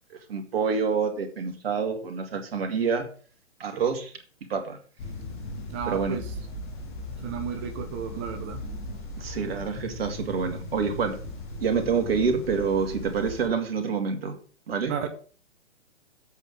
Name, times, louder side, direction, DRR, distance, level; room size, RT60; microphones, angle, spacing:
voice 1, 0.1-3.1 3.6-4.1 4.5-4.8 5.9-6.2 9.2-11.2 11.6-14.4 14.7-15.1, right 5 dB, 55° right, 5 dB, 2.5 m, -27 dB
sound 1, 5.0-13.5, left 1 dB, 45° left, 3.6 m, -38 dB
voice 2, 5.7-6.3 7.2-8.6 14.9-15.1, right 8 dB, 10° right, 5 dB, 0.4 m, -33 dB
8.2 x 5.9 x 7.3 m, 0.41 s
hypercardioid pair, 135°, 36 cm